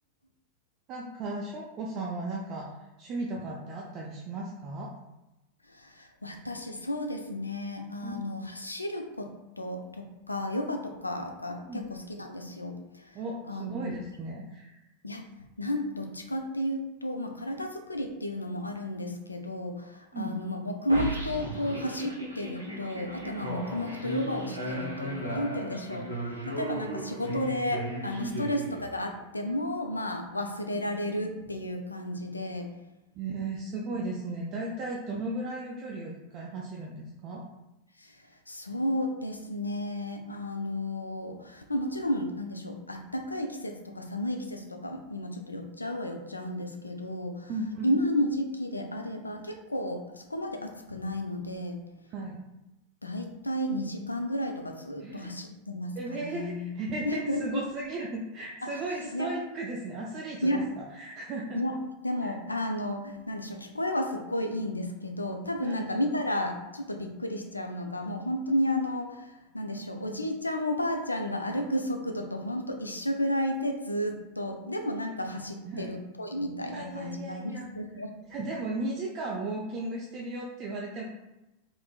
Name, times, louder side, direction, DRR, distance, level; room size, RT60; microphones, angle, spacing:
voice 1, 0.9-2.7 3.0-4.9 8.0-8.2 11.6-11.8 13.1-14.8 20.1-20.4 28.2-28.4 33.2-37.4 47.5-47.9 52.1-52.4 55.0-55.3 56.0-61.6 62.2-62.3 65.6-65.9 75.6-75.9 76.6-77.6 78.3-81.0, right 2 dB, 35° right, -3 dB, 0.4 m, -36 dB
voice 2, 5.7-9.3 9.6-13.2 13.5-13.9 15.0-15.2 15.6-32.7 38.0-38.2 38.5-47.5 47.8-51.8 53.0-56.7 57.0-57.6 58.6-58.7 59.1-59.3 60.4-60.7 61.5-61.8 62.0-78.1, left 1 dB, 80° left, 4 dB, 0.3 m, -32 dB
sound 1, 20.9-29.2, right 1 dB, 85° right, 0.5 m, -36 dB
3.4 x 2.5 x 2.2 m, 0.97 s
figure-of-eight pair, 90°, 0 cm